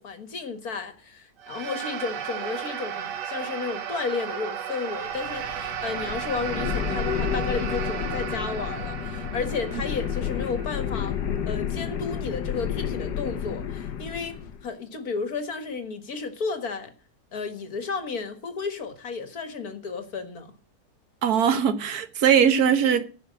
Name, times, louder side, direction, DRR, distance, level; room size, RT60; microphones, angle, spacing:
voice 1, 0.0-11.2 11.5-16.9 17.3-20.5, left 4 dB, 60° left, 2.1 m, -33 dB
sound 1, 1.4-11.9, right 9 dB, 90° right, 1.6 m, -35 dB
sound 2, 5.0-14.6, left 8 dB, 85° left, 1.6 m, -31 dB
voice 2, 21.2-23.0, right 8 dB, 70° right, 1.5 m, -20 dB
15.0 x 5.9 x 7.6 m
omnidirectional pair, 1.8 m